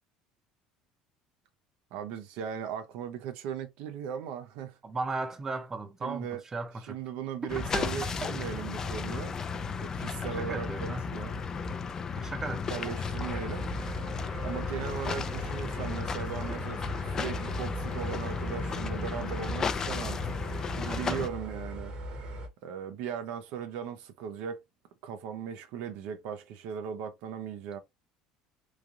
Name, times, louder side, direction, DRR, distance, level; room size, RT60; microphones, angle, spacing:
voice 1, 1.9-4.8 6.0-6.4 6.8-9.3 9.8-11.4 12.7-13.7 14.4-20.2 20.7-21.9 22.6-24.6 25.0-27.8, right 8 dB, 75° right, 0.5 m, -38 dB
voice 2, 4.8-7.0 7.7-7.8 10.4-11.1 12.2-12.8 13.2-13.4 20.8-21.3, right 3 dB, 25° right, 0.6 m, -36 dB
sound 1, 7.5-21.3, left 5 dB, 30° left, 0.4 m, -34 dB
sound 2, 13.0-22.5, right 1 dB, 50° right, 1.0 m, -40 dB
3.1 x 2.4 x 2.4 m
supercardioid pair, 110°, 2 cm